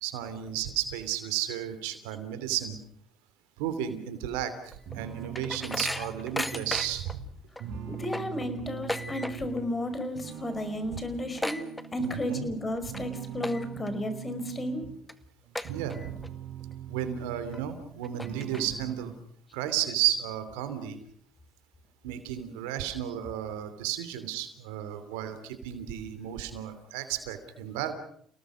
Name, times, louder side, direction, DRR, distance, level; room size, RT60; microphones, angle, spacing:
voice 1, 0.0-2.8 3.6-7.2 12.0-12.5 15.7-16.2 16.9-19.1 19.5-21.0 22.0-27.9, right 11 dB, 85° right, 11 dB, 2.8 m, -33 dB
sound 1, 4.7-7.2 7.6-7.7 7.9-9.7 9.9-10.3 10.6-10.7 10.9-12.3 12.8-13.0 13.4-13.9 14.4-14.5 15.1-15.2 15.6-16.3 16.7-16.8 17.5-17.6 18.0-18.9, left 1 dB, 10° left, 1.9 m, -35 dB
sound 2, 4.9-9.8 10.1-12.4 12.9-15.0 15.5-17.9 18.2-19.1, right 10 dB, 70° right, 5.4 m, -42 dB
voice 2, 8.0-11.7 11.9-14.9, left 1 dB, 25° left, 10 dB, 5.2 m, -33 dB
29.5 x 18.5 x 6.4 m, 0.65 s
supercardioid pair, 65°, 0 cm